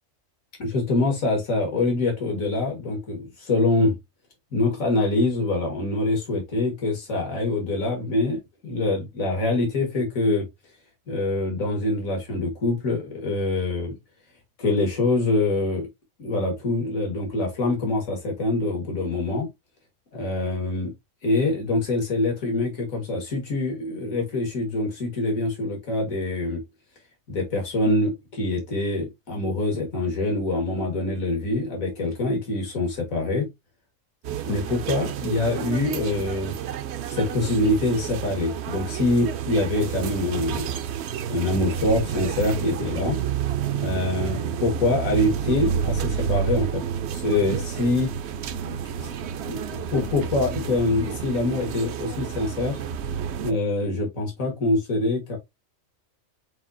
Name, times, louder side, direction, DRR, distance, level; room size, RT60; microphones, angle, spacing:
voice 1, 0.6-4.0 4.5-10.5 11.1-14.0 14.6-15.9 16.2-19.5 20.1-20.9 21.2-26.6 27.3-33.5 34.5-36.6 37.1-40.8 41.3-43.2 43.7-46.8 47.1-48.1 48.6-49.1 49.5-52.8 53.4-55.4, left 2 dB, 85° left, 2.0 m, -25 dB
sound 1, 34.2-53.5, right 8 dB, 65° right, 0.8 m, -30 dB
7.5 x 2.8 x 2.5 m
omnidirectional pair, 1.4 m